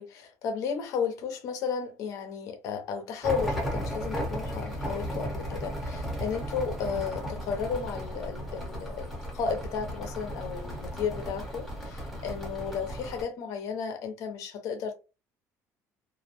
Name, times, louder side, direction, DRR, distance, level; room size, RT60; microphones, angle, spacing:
voice 1, 0.0-14.9, left 6 dB, 60° left, 0.6 m, -34 dB
sound 1, 3.2-13.2, equal, ahead, 0.7 m, -35 dB
2.5 x 2.1 x 2.8 m
cardioid pair, 165°, 6 cm